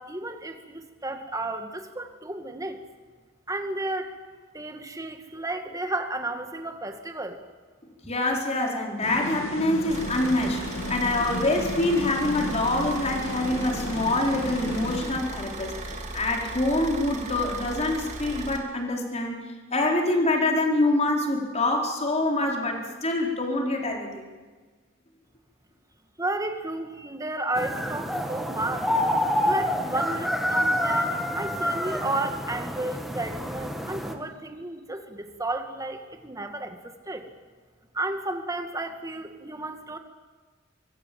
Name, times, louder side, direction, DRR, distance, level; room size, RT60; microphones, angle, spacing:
voice 1, 0.0-2.8 3.5-4.1 4.5-7.4 26.2-28.9 29.4-37.3 37.9-40.0, right 2 dB, 15° right, 5 dB, 2.1 m, -32 dB
voice 2, 8.1-10.6 10.9-19.3 19.7-24.2, left 2 dB, 30° left, 1 dB, 4.3 m, -25 dB
sound 1, 9.0-15.6, left 2 dB, 90° left, 2.2 m, -35 dB
Car / Idling, 9.9-18.6, right 2 dB, 35° right, 2.9 m, -37 dB
sound 2, 27.5-34.1, equal, ahead, 1.9 m, -27 dB
24.0 x 23.5 x 7.7 m, 1.4 s
head